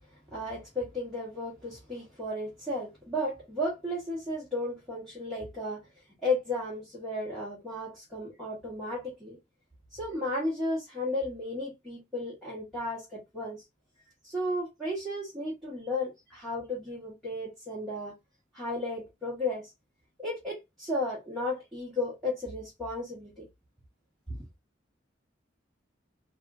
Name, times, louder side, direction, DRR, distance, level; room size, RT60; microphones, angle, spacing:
voice 1, 0.3-5.9 6.2-9.4 9.9-13.6 14.2-18.1 18.5-19.7 20.2-23.5 24.3-24.4, left 1 dB, ahead, 1.2 m, -34 dB
3.5 x 2.4 x 2.3 m
head